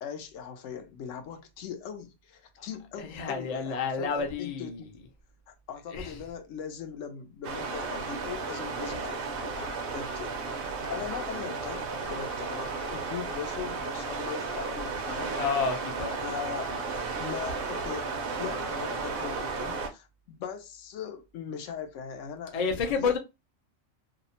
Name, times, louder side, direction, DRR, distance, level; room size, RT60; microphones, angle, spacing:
voice 1, 0.0-5.0 5.5-10.3 10.8-15.3 16.2-16.8 17.2-18.1 18.4-23.2, left 7 dB, 80° left, 0.9 m, -40 dB
voice 2, 3.0-4.8 5.9-6.1 15.4-16.2 22.5-23.2, left 5 dB, 45° left, 0.5 m, -29 dB
sound 1, 7.4-19.9, right 4 dB, 60° right, 0.6 m, -34 dB
2.6 x 2.0 x 2.7 m
omnidirectional pair, 1.3 m